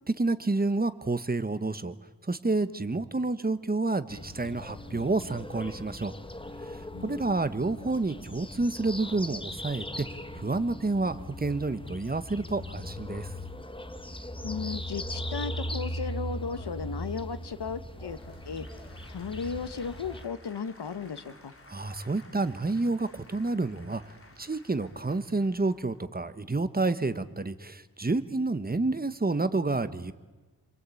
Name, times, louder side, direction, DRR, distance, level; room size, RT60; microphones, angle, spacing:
voice 1, 0.2-2.0 2.2-6.1 6.6-10.1 10.3-13.3 21.7-30.1, right 3 dB, 20° right, 12 dB, 1.2 m, -29 dB
sound 1, 4.1-20.2, left 1 dB, 15° left, 1.2 m, -39 dB
voice 2, 6.9-7.3 14.4-18.2 18.4-18.7 19.1-21.5, left 5 dB, 75° left, 11 dB, 1.6 m, -35 dB
Applause / Crowd, 17.6-26.0, left 2 dB, 30° left, 3.3 m, -55 dB
29.5 x 23.5 x 8.5 m, 1.3 s
wide cardioid pair, 130°, 41 cm